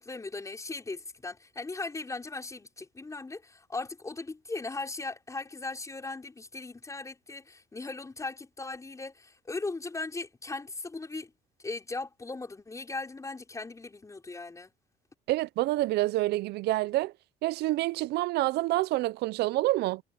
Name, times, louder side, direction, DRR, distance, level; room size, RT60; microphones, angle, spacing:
voice 1, 0.0-11.3 11.6-14.7, left 3 dB, 20° left, 5.5 m, -38 dB
voice 2, 15.3-17.1 17.4-20.0, right 17 dB, 75° right, 0.5 m, -27 dB
cardioid pair, 110°, 17 cm